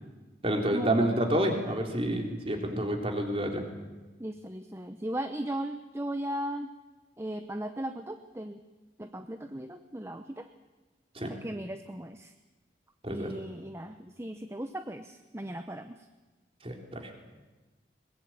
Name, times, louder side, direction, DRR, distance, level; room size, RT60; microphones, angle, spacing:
voice 1, 0.4-3.6 11.2-11.3 13.0-13.3 16.6-17.2, right 1 dB, 30° right, 3 dB, 3.4 m, -29 dB
voice 2, 4.2-6.7 7.2-8.6 9.0-10.5 11.3-12.3 13.1-16.1, right 1 dB, 15° right, 8 dB, 0.8 m, -37 dB
22.0 x 21.5 x 8.8 m, 1.2 s
head